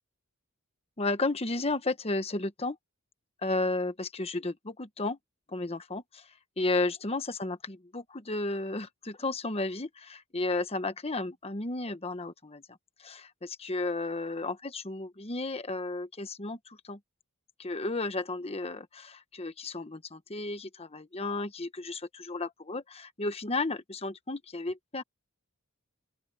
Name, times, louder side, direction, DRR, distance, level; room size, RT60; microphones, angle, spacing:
voice 1, 1.0-2.8 3.4-5.2 5.5-6.3 6.6-12.6 13.0-17.0 17.6-25.0, left 2 dB, 30° left, 1.1 m, -33 dB
open air
head